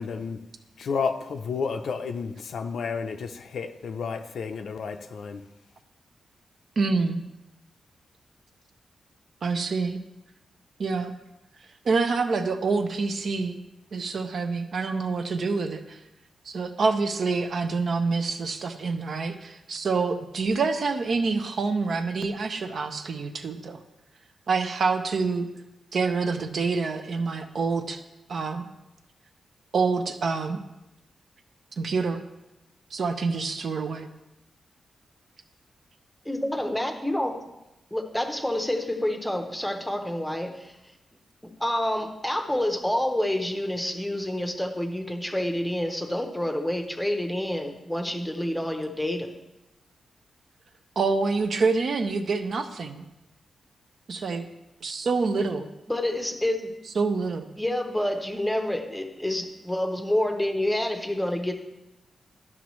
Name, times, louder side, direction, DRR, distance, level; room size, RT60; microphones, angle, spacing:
voice 1, 0.0-0.4 0.9-5.4, left 5 dB, 70° left, 7 dB, 0.5 m, -31 dB
voice 2, 6.8-7.2 9.4-10.0 10.8-11.1 11.8-13.6 13.9-16.0 16.5-23.8 24.5-25.5 25.9-28.0 28.3-28.6 29.7-30.6 31.8-32.2 32.9-34.1 51.0-53.0 54.1-54.5 54.8-55.7 57.0-57.5, right 4 dB, 50° right, 7 dB, 0.6 m, -26 dB
voice 3, 36.3-37.3 37.9-40.7 41.4-49.3 55.9-56.7 57.6-61.5, left 1 dB, 5° left, 4 dB, 0.7 m, -28 dB
12.0 x 6.0 x 3.1 m, 0.96 s
wide cardioid pair, 170°, 0 cm